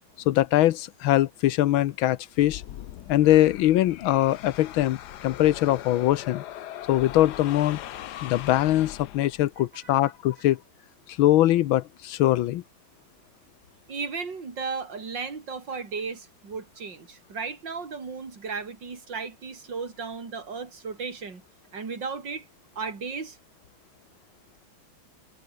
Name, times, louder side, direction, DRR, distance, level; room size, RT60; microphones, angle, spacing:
voice 1, 0.3-2.6 3.1-5.0 5.2-6.4 6.9-7.8 8.2-10.6 11.2-12.6, left 14 dB, 85° left, 1.6 m, -22 dB
sound 1, 2.3-9.6, left 12 dB, 65° left, 1.2 m, -40 dB
voice 2, 9.7-10.1 13.9-21.4 21.7-22.5 22.8-23.4, right 5 dB, 65° right, 4.1 m, -35 dB
omnidirectional pair, 2.2 m